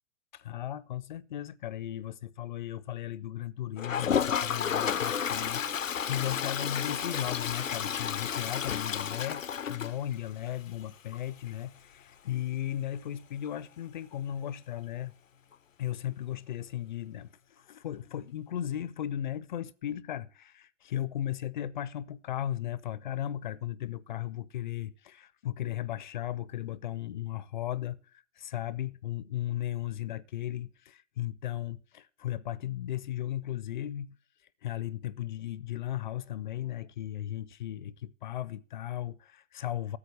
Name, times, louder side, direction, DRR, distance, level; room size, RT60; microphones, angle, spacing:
voice 1, 0.3-15.1 15.8-34.2 34.6-40.0, left 12 dB, 40° left, 0.6 m, -36 dB
Toilet flush, 3.8-10.5 10.8-10.9 11.1-11.2 11.5-11.6 14.1-14.2 15.5-15.6, left 8 dB, 80° left, 0.7 m, -31 dB
13.5 x 7.8 x 7.9 m
figure-of-eight pair, 115°, 39 cm